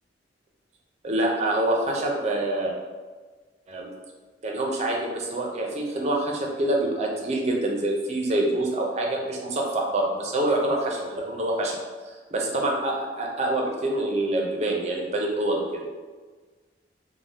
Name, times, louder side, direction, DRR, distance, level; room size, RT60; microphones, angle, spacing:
voice 1, 1.0-2.7 3.7-3.9 4.4-11.8 12.3-15.8, right 1 dB, 35° right, -1 dB, 0.5 m, -26 dB
2.6 x 2.1 x 3.3 m, 1.4 s
head